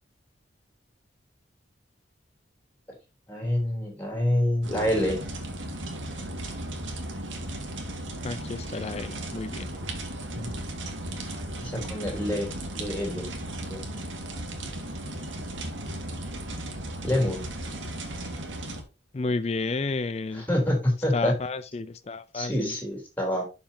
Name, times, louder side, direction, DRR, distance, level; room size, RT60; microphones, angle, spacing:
voice 1, 3.3-5.2 10.3-10.5 11.6-12.5 12.7-13.3 13.7-13.8 17.0-17.4 20.3-21.3 22.3-23.4, left 1 dB, 10° left, 3.4 m, -26 dB
sound 1, 4.6-18.8, right 1 dB, 90° right, 2.0 m, -36 dB
voice 2, 8.2-9.7 19.1-20.5 21.1-22.7, left 3 dB, 35° left, 0.4 m, -31 dB
11.5 x 5.4 x 2.8 m
head